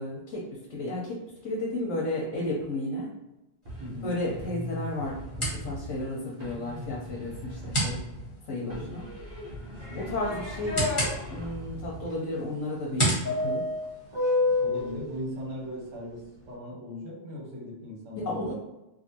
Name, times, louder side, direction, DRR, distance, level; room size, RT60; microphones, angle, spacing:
voice 1, 0.0-3.1 4.0-8.0 8.5-9.0 9.9-10.9 11.3-13.7 18.1-18.5, left 1 dB, 90° left, -4 dB, 1.0 m, -33 dB
sound 1, 3.6-14.6, right 1 dB, 25° left, 1.2 m, -36 dB
sound 2, 3.6-6.1 6.4-8.4 8.7-12.1, equal, 50° right, 0.8 m, -40 dB
voice 2, 3.8-4.1 7.7-7.8 8.6-8.9 9.9-10.2 14.6-18.5, equal, 80° right, -4 dB, 1.4 m, -38 dB
sound 3, 9.8-11.1 13.2-14.9, left 3 dB, 20° right, 1.2 m, -28 dB
2.6 x 2.6 x 2.7 m, 0.97 s
omnidirectional pair, 1.3 m